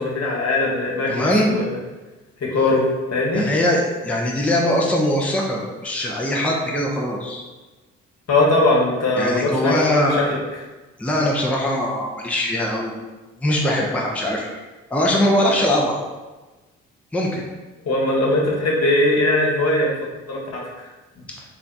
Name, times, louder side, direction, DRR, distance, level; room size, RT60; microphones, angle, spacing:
voice 1, 0.0-1.8 2.4-3.5 8.3-10.4 17.8-20.9, left 2 dB, 40° left, -3 dB, 1.3 m, -20 dB
voice 2, 1.1-1.6 3.3-7.4 9.2-10.2 11.0-13.0 13.3-14.5 14.9-16.0 17.1-17.4 21.3-21.4, left 1 dB, 5° left, -2 dB, 0.6 m, -21 dB
3.3 x 2.4 x 4.0 m, 1.2 s
figure-of-eight pair, 40°, 38 cm